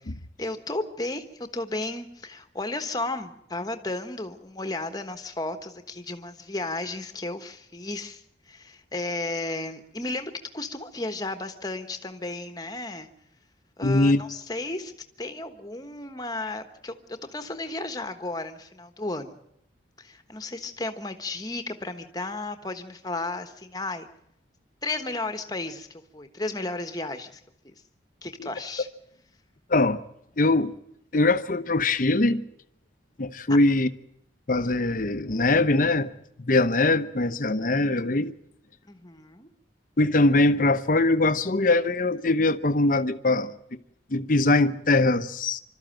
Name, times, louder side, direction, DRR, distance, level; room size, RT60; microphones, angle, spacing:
voice 1, 0.4-13.1 13.8-19.4 20.0-24.1 24.8-27.7 28.2-28.9 38.8-39.5, left 2 dB, 20° left, 1.3 m, -34 dB
voice 2, 13.8-14.2 28.4-28.5 29.7-30.0 30.4-30.7 31.1-32.4 33.2-33.9 34.5-36.1 36.4-38.3 40.0-43.5 44.1-45.6, left 2 dB, 45° left, 0.8 m, -22 dB
26.0 x 13.0 x 9.0 m
head